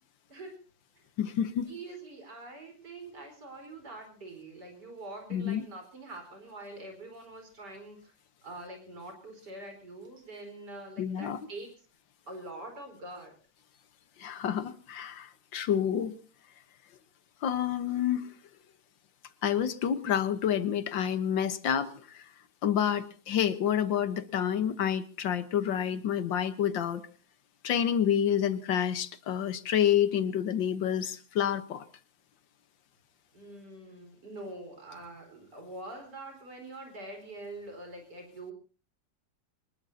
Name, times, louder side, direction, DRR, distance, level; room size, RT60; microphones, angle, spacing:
voice 1, 0.3-0.6 1.0-1.1 1.7-8.1 8.4-11.7 12.3-13.3 33.3-38.5, right 2 dB, 65° right, 4 dB, 5.2 m, -44 dB
voice 2, 1.2-1.7 5.3-5.6 11.0-11.4 14.2-16.2 17.4-18.3 19.4-22.2 22.6-27.0 27.6-31.8, left 9 dB, 90° left, 12 dB, 1.9 m, -28 dB
24.5 x 20.0 x 2.8 m, 0.38 s
omnidirectional pair, 2.0 m